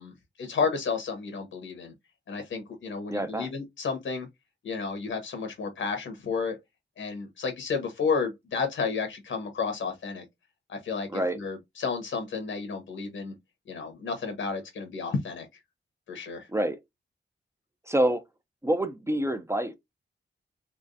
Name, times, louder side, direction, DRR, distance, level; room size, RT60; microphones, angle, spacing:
voice 1, 0.0-1.9 2.3-4.3 4.6-6.6 7.0-10.2 10.7-13.3 13.7-15.5 16.1-16.5, left 5 dB, 90° left, 1.3 m, -32 dB
voice 2, 3.1-3.5 11.1-11.4 16.5-16.8 17.9-18.2 18.6-19.7, right 1 dB, 15° right, 0.5 m, -26 dB
3.5 x 3.1 x 2.6 m
wide cardioid pair, 95°, 19 cm